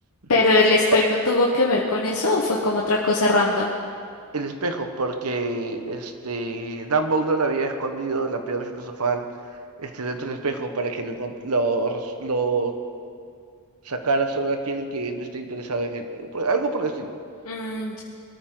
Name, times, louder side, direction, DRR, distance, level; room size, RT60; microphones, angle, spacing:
voice 1, 0.3-3.7 17.4-18.0, left 2 dB, 70° left, -2 dB, 1.3 m, -20 dB
voice 2, 4.3-9.3 9.8-12.7 13.8-17.1, right 3 dB, 75° right, 6 dB, 1.3 m, -26 dB
22.0 x 13.5 x 3.9 m, 2.3 s
head